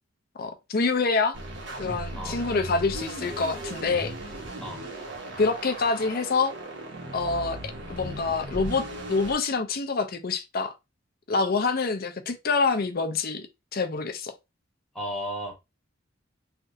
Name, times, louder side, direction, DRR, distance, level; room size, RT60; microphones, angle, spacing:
voice 1, 0.4-1.4 1.8-4.1 5.4-6.5 7.1-10.7 11.3-13.5 13.7-14.3, left 4 dB, 50° left, 0.6 m, -26 dB
sound 1, 1.3-9.3, right 1 dB, 65° right, 1.0 m, -37 dB
voice 2, 14.9-15.5, equal, 5° left, 0.8 m, -34 dB
3.3 x 2.7 x 2.4 m
head